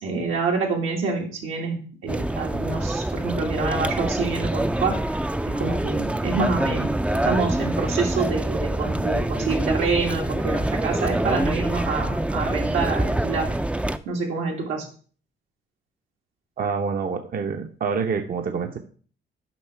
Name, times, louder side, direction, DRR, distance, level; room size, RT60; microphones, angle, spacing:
voice 1, 0.0-5.2 5.4-6.9 7.2-13.5 14.0-14.9, right 4 dB, 85° right, 0 dB, 2.3 m, -27 dB
sound 1, 2.1-14.0, right 1 dB, 5° right, 0.4 m, -25 dB
voice 2, 16.6-18.8, right 5 dB, 45° right, 5 dB, 0.8 m, -27 dB
7.1 x 5.6 x 4.5 m, 0.42 s
cardioid pair, 90°, 20 cm